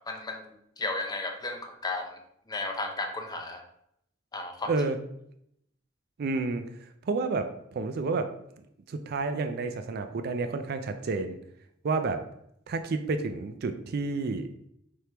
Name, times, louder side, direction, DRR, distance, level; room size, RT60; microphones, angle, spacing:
voice 1, 0.1-2.2 2.5-3.6 4.3-4.7, left 2 dB, 20° left, 3 dB, 0.5 m, -34 dB
voice 2, 4.7-5.0 6.2-6.7 7.0-8.3 8.9-11.4 11.8-12.2 12.7-14.5, right 3 dB, 50° right, 8 dB, 0.4 m, -30 dB
4.5 x 3.4 x 2.8 m, 0.74 s
head